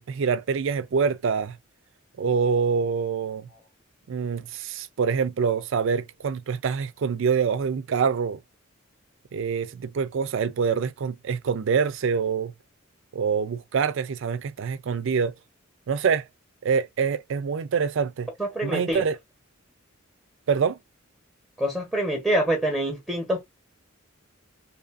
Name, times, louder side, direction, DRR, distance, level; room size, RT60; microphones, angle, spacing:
voice 1, 0.0-1.6 2.2-3.5 4.1-8.4 9.3-12.5 13.1-15.3 15.9-16.3 16.6-18.3 18.6-19.2 20.5-20.8, right 6 dB, 60° right, 0.4 m, -25 dB
voice 2, 18.4-19.1 21.6-23.4, right 1 dB, 5° right, 0.8 m, -25 dB
2.7 x 2.5 x 2.4 m
head